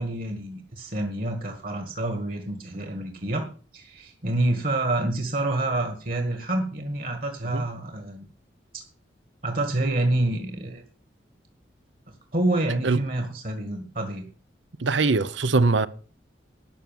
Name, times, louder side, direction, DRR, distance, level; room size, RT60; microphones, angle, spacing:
voice 1, 0.0-3.5 3.7-8.2 8.7-8.9 9.4-10.8 12.3-14.3, right 2 dB, 45° right, 1.7 m, -27 dB
voice 2, 14.8-15.9, right 3 dB, 80° right, 0.8 m, -21 dB
12.5 x 6.2 x 9.4 m
head